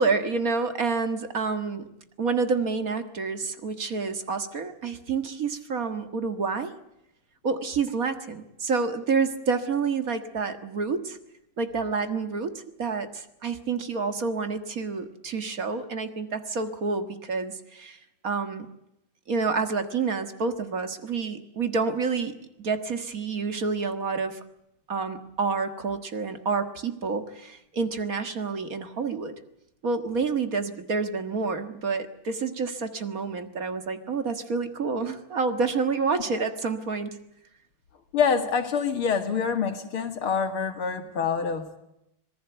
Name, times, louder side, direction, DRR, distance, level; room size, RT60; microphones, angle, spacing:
voice 1, 0.0-1.9 2.2-6.7 7.4-11.2 11.6-18.0 18.2-18.7 19.3-24.4 24.9-29.3 29.8-37.1, right 4 dB, 45° right, 8 dB, 1.9 m, -28 dB
voice 2, 38.1-41.8, left 6 dB, 80° left, 7 dB, 2.9 m, -26 dB
26.0 x 19.5 x 8.0 m, 0.84 s
omnidirectional pair, 2.3 m